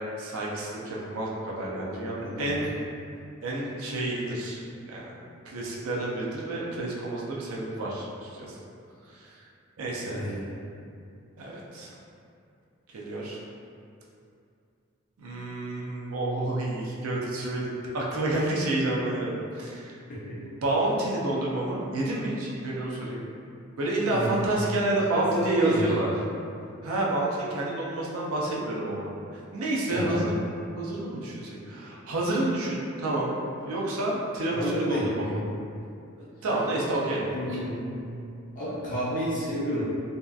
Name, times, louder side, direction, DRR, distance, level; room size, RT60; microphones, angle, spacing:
voice 1, 0.2-2.7 3.4-4.6 4.9-5.1 5.5-8.6 9.1-9.3 9.8-10.3 11.4-11.9 12.9-13.4 15.2-20.0 20.6-23.3 23.8-26.1 26.8-30.4 30.8-35.4 36.4-37.2, right 2 dB, 90° right, -4 dB, 0.5 m, -29 dB
voice 2, 2.2-2.7 10.1-10.4 20.1-20.4 24.1-24.5 25.1-25.8 29.9-30.3 34.5-35.4 37.3-38.0 38.5-39.8, equal, 40° left, -9 dB, 0.5 m, -31 dB
2.7 x 2.3 x 2.2 m, 2.5 s
head